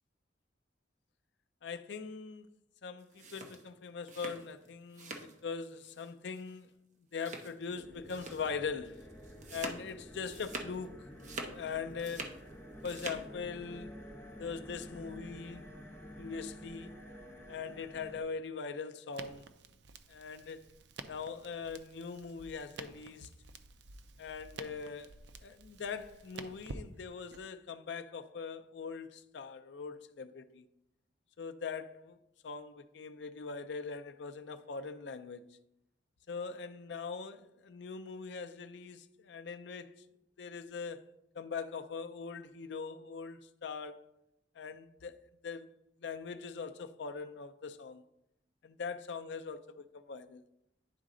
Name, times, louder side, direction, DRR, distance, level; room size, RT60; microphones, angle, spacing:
voice 1, 1.6-2.5 2.8-6.7 7.1-9.1 9.5-11.1 11.5-12.3 12.8-13.9 14.4-15.7 16.2-17.0 17.5-19.5 20.1-20.7 21.1-23.3 24.2-25.1 25.4-30.7 31.4-32.2 32.4-35.4 36.3-39.9 40.4-41.1 41.3-44.0 44.6-45.1 45.4-45.7 46.0-48.0 48.6-50.4, left 5 dB, 65° left, 0.5 m, -41 dB
sound 1, 3.0-5.4 5.7-6.1 6.3-6.5 7.1-7.7 8.1-8.5 8.8-10.8 11.1-12.4 12.7-13.3, right 3 dB, 40° right, 0.8 m, -45 dB
sound 2, 7.7-18.2, equal, 15° left, 0.9 m, -50 dB
Crackle, 19.1-27.4, right 4 dB, 65° right, 0.5 m, -50 dB
10.0 x 4.0 x 3.7 m
head